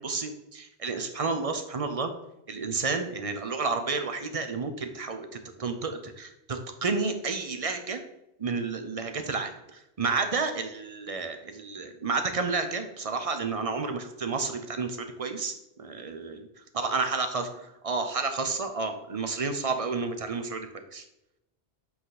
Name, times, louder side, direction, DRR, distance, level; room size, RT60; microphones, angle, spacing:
voice 1, 0.0-2.1 2.5-8.0 8.4-16.5 16.7-21.0, right 4 dB, 40° right, 6 dB, 0.7 m, -31 dB
7.7 x 4.3 x 4.1 m, 0.87 s
omnidirectional pair, 1.1 m